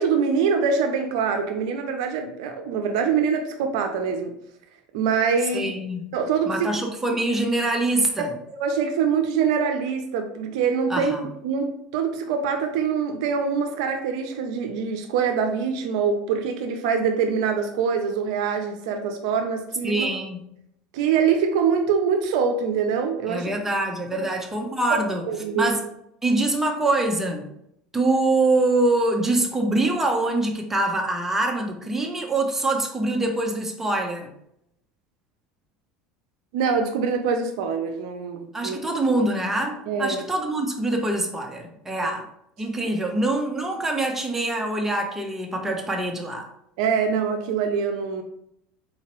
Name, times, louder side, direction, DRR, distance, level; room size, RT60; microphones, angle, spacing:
voice 1, 0.0-4.3 4.9-5.7 6.1-6.7 8.5-20.1 20.9-23.5 24.1-24.2 24.9-25.0 25.3-25.7 36.5-38.8 39.9-40.2 46.8-48.2, right 6 dB, 80° right, 5 dB, 0.5 m, -24 dB
voice 2, 5.5-6.0 6.5-8.3 10.9-11.2 19.8-20.4 23.3-25.2 25.5-25.8 26.2-27.5 27.9-34.3 38.5-42.3 42.6-46.5, right 2 dB, 10° right, 2 dB, 0.7 m, -24 dB
3.9 x 2.8 x 3.0 m, 0.76 s
supercardioid pair, 115°, 3 cm